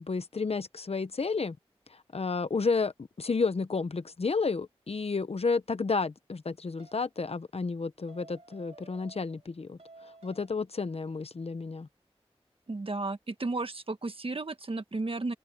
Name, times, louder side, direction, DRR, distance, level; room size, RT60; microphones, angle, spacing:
voice 1, 0.0-1.6 1.9-2.9 3.2-9.8 10.2-11.9, left 4 dB, 70° left, 0.8 m, -31 dB
sound 1, 6.8-7.1 8.1-9.5 9.8-10.7, right 3 dB, 85° right, 3.1 m, -54 dB
voice 2, 12.7-15.3, right 3 dB, 60° right, 1.5 m, -33 dB
wide cardioid pair, 70°, 11 cm